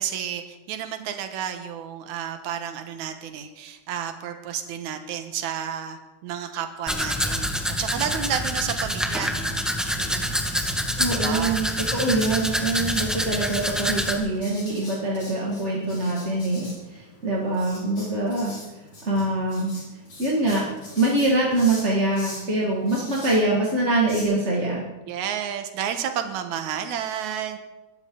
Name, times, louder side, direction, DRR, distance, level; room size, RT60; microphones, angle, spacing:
voice 1, 0.0-9.6 10.0-10.3 11.1-11.6 25.1-27.6, right 9 dB, 75° right, 7 dB, 2.6 m, -31 dB
Domestic sounds home sounds, 6.9-14.1, equal, ahead, 0.6 m, -26 dB
Writing, 9.0-24.2, left 1 dB, 60° left, 8.4 m, -44 dB
voice 2, 11.0-18.5 19.0-19.7 20.2-20.7 21.0-24.9, right 2 dB, 25° right, -4 dB, 2.1 m, -24 dB
23.5 x 13.5 x 4.0 m, 1.1 s
omnidirectional pair, 3.5 m